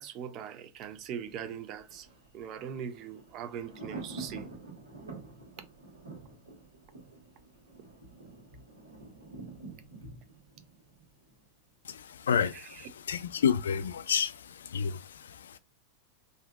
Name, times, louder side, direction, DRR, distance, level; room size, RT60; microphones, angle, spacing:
voice 1, 0.0-2.1 2.3-4.5 12.5-12.9, right 8 dB, 35° right, 0.5 m, -41 dB
Thunder, 0.9-11.8 12.1-12.2, right 3 dB, 75° right, 1.3 m, -48 dB
voice 2, 11.8-15.6, left 7 dB, 65° left, 0.3 m, -30 dB
3.5 x 2.6 x 2.2 m
figure-of-eight pair, 90°, 0 cm